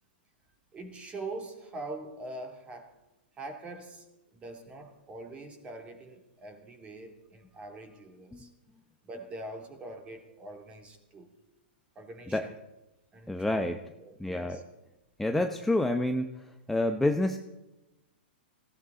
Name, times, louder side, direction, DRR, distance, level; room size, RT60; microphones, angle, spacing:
voice 1, 0.7-2.9 3.4-4.1 4.3-8.5 9.0-11.3 11.9-12.5 13.1-13.6 14.0-14.6, right 2 dB, 20° right, 4 dB, 3.2 m, -43 dB
voice 2, 13.3-13.8 14.2-14.6 15.2-17.4, left 1 dB, 5° left, 5 dB, 0.9 m, -28 dB
19.0 x 16.5 x 4.1 m, 0.97 s
hypercardioid pair, 115°, 6 cm